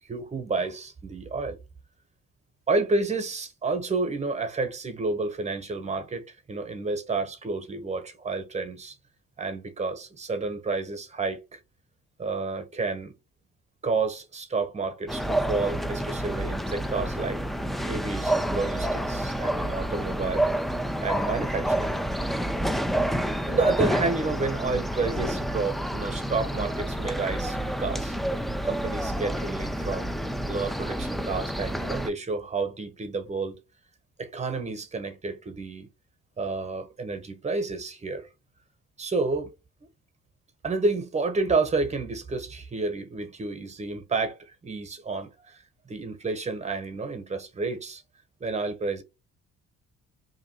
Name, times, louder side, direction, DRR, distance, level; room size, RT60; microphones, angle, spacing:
voice 1, 0.0-1.6 2.7-8.9 9.4-11.6 12.2-13.1 13.8-17.4 17.9-20.5 21.0-22.0 23.5-28.1 28.6-30.1 30.5-33.5 34.2-35.9 36.4-38.3 39.0-39.5 40.6-48.0 48.4-49.0, right 3 dB, 20° right, 0.9 m, -30 dB
sound 1, 15.1-32.1, right 1 dB, ahead, 0.3 m, -29 dB
2.8 x 2.5 x 4.0 m
cardioid pair, 90°, 30 cm